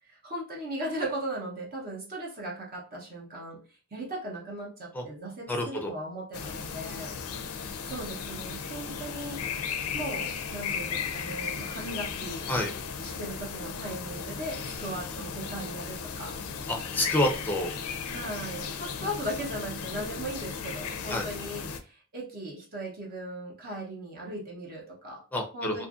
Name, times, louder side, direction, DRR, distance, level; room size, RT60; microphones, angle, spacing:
voice 1, 0.0-7.1 7.9-12.5 13.0-16.4 18.1-25.2 25.5-25.9, right 1 dB, 40° right, -2 dB, 0.8 m, -38 dB
voice 2, 5.5-5.9 12.5-12.7 16.7-17.7 21.1-21.3 25.3-25.9, left 1 dB, 10° left, 2 dB, 0.5 m, -28 dB
sound 1, 6.3-21.8, left 6 dB, 75° left, 0.4 m, -36 dB
2.6 x 2.5 x 2.4 m, 0.37 s
head